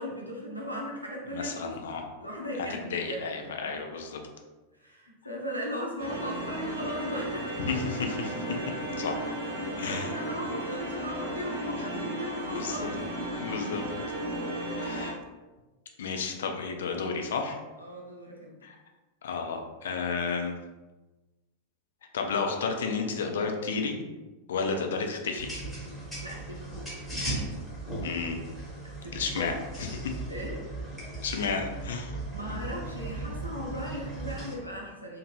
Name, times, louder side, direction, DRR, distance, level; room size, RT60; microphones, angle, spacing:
voice 1, 0.0-3.5 4.8-7.5 9.6-12.9 16.3-16.4 17.8-18.6 26.2-26.7 28.8-29.5 30.3-30.7 32.3-35.2, equal, 90° right, -2 dB, 0.6 m, -38 dB
voice 2, 1.3-2.0 2.7-4.2 7.6-8.4 9.0-9.2 9.8-10.1 12.4-12.9 13.4-13.9 14.8-15.2 16.0-17.6 18.6-18.8 19.2-20.5 22.1-24.0 24.5-25.5 28.0-28.4 29.0-30.1 31.2-32.2, left 5 dB, 60° left, 3 dB, 0.4 m, -32 dB
sound 1, 6.0-15.1, right 1 dB, 60° right, 0.8 m, -34 dB
sound 2, 25.4-34.6, right 2 dB, ahead, 1.1 m, -37 dB
2.7 x 2.1 x 3.1 m, 1.2 s
figure-of-eight pair, 90°, 0 cm